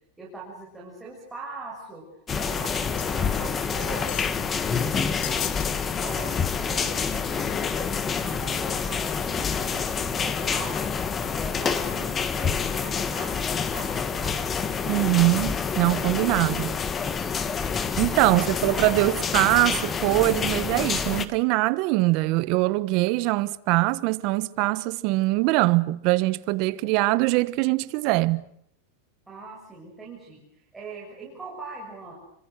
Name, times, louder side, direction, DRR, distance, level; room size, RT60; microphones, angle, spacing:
voice 1, 0.2-2.0 2.3-5.5 5.9-6.3 6.7-10.9 11.3-14.4 16.3-16.8 18.1-18.9 29.3-32.1, right 3 dB, 10° right, 7.0 m, -41 dB
sound 1, 2.3-21.3, left 6 dB, 20° left, 1.5 m, -27 dB
sound 2, 3.0-3.4 3.7-4.4 5.2-5.7 6.0-6.2 6.7-6.8, left 19 dB, 55° left, 1.1 m, -37 dB
voice 2, 14.9-16.8 18.0-28.4, right 20 dB, 50° right, 1.2 m, -23 dB
30.0 x 25.0 x 6.6 m
supercardioid pair, 145°, 0 cm